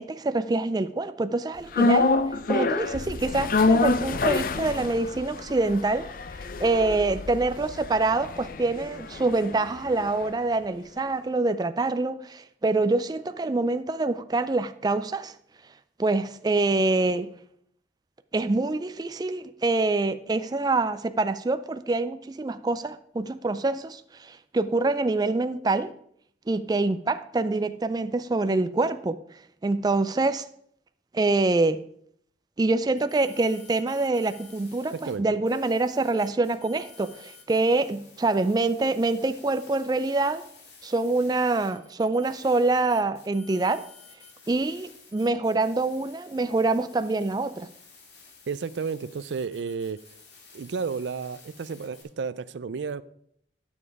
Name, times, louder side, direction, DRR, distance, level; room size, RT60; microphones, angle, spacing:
voice 1, 0.0-2.1 2.5-6.1 6.6-15.3 16.0-17.3 18.3-25.9 26.5-29.2 29.6-30.4 31.1-31.8 32.6-40.4 40.8-43.9 44.5-47.7, right 2 dB, 20° right, 11 dB, 0.4 m, -25 dB
sound 1, 1.7-10.0 10.3-10.4, left 3 dB, 50° left, 0.5 m, -26 dB
sound 2, 33.0-35.1 35.5-52.0, left 5 dB, 70° left, 2.6 m, -52 dB
voice 2, 34.9-35.2 48.5-50.0 50.5-53.0, right 5 dB, 85° right, 16 dB, 0.4 m, -32 dB
10.0 x 7.1 x 4.8 m, 0.67 s
head